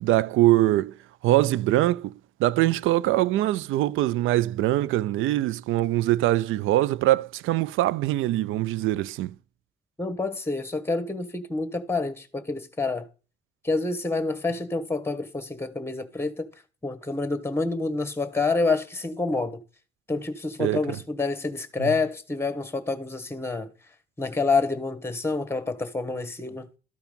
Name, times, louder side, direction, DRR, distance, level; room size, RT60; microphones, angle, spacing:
voice 1, 0.0-0.9 1.2-2.1 2.4-9.3 20.6-20.8 21.8-21.9, right 15 dB, 85° right, 0.4 m, -23 dB
voice 2, 10.0-13.1 13.6-16.5 16.8-19.6 20.1-23.7 24.2-26.7, left 3 dB, 10° left, 1.6 m, -28 dB
13.0 x 4.7 x 5.2 m
cardioid pair, 90°, 20 cm